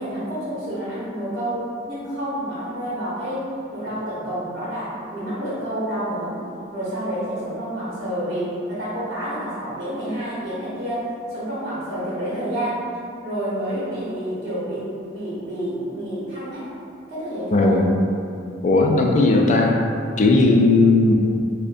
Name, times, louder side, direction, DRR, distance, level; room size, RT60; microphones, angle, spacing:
voice 1, 0.0-6.4 6.7-12.8 13.2-16.7 17.1-17.8, equal, 50° right, -10 dB, 1.0 m, -29 dB
voice 2, 17.5-17.9 18.6-19.8 20.2-21.1, left 2 dB, 40° left, 1 dB, 0.4 m, -16 dB
5.0 x 2.1 x 2.6 m, 2.5 s
head